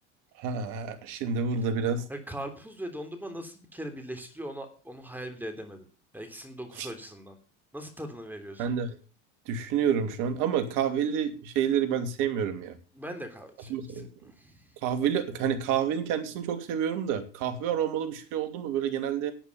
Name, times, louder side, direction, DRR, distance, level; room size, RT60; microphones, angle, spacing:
voice 1, 0.4-2.1 6.8-6.9 8.6-9.0 9.5-12.8 13.7-14.1 14.8-19.3, right 8 dB, 60° right, 8 dB, 2.7 m, -29 dB
voice 2, 2.1-5.9 6.1-7.4 7.7-8.7 12.9-14.8, equal, 5° right, 5 dB, 3.3 m, -40 dB
11.5 x 8.3 x 7.0 m, 0.35 s
hypercardioid pair, 80°, 36 cm